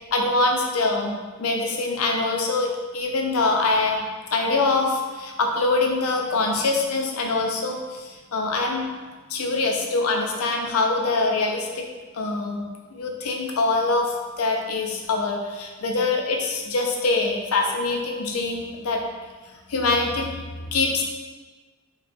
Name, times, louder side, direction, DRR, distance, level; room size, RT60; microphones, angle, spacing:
voice 1, 0.1-4.0 4.3-8.9 9.3-11.8 12.1-12.6 12.9-19.0 19.7-21.0, left 3 dB, 90° left, 1 dB, 0.5 m, -24 dB
4.0 x 2.2 x 3.3 m, 1.3 s
head